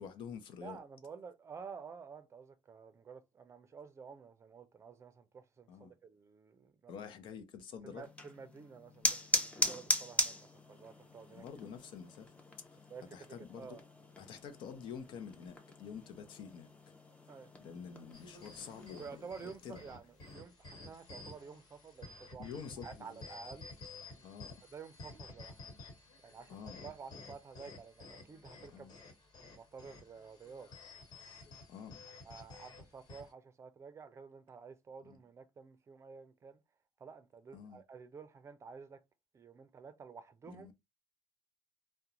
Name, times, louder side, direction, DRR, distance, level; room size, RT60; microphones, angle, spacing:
voice 1, 0.0-0.8 5.7-5.9 6.9-8.0 9.6-9.9 11.3-12.3 13.1-13.8 14.2-16.9 17.6-19.8 22.4-23.2 24.2-24.6 26.5-26.8 28.7-28.9 31.7-32.0 35.0-35.2 37.5-37.8 40.4-40.7, left 7 dB, 75° left, 0.6 m, -48 dB
voice 2, 0.6-7.0 7.8-10.3 10.7-11.4 12.9-13.8 17.3-17.5 19.0-22.5 22.8-23.7 24.7-25.6 26.2-28.9 29.4-30.7 32.2-36.6 37.0-39.0 39.3-40.7, right 5 dB, 35° right, 0.5 m, -51 dB
sound 1, 8.0-19.2, left 1 dB, 15° left, 0.6 m, -39 dB
sound 2, 18.1-33.3, left 2 dB, 60° left, 1.5 m, -52 dB
2.4 x 2.1 x 2.8 m
cardioid pair, 105°, 8 cm